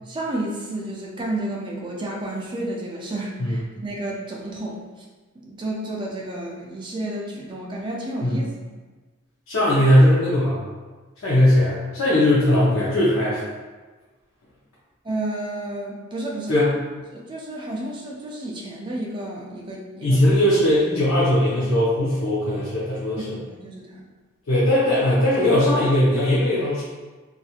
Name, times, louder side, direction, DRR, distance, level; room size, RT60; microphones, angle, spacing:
voice 1, 0.0-4.8 5.4-8.4 15.0-16.6 17.1-20.2 23.2-24.0, right 1 dB, 20° right, -2 dB, 0.3 m, -31 dB
voice 2, 9.5-10.6 11.2-13.4 16.5-16.7 20.0-23.2 24.5-26.8, left 1 dB, 85° left, -8 dB, 0.7 m, -19 dB
2.8 x 2.4 x 2.4 m, 1.3 s
head